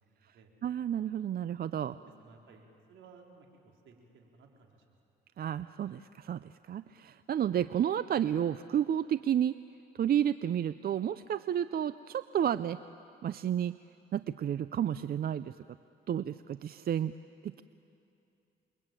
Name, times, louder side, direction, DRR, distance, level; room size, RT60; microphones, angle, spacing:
voice 1, 0.0-0.5 1.9-5.0 5.3-5.5, right 4 dB, 75° right, 1 dB, 3.9 m, -58 dB
voice 2, 0.6-1.9 5.4-9.5 9.9-12.8 13.2-13.8 14.1-15.5 16.1-17.1 17.4-17.6, right 10 dB, 50° right, 14 dB, 0.5 m, -31 dB
29.0 x 22.5 x 9.0 m, 2.7 s
cardioid pair, 90°, 20 cm